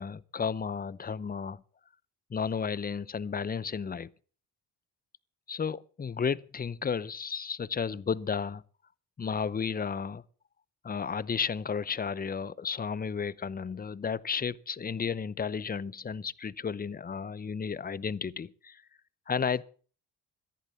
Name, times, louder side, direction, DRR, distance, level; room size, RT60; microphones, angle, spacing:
voice 1, 0.0-1.6 2.3-4.1 5.5-8.6 9.2-10.2 10.8-18.8 19.3-19.6, left 6 dB, 25° left, 0.7 m, -33 dB
14.0 x 11.0 x 7.0 m
cardioid pair, 85°, 37 cm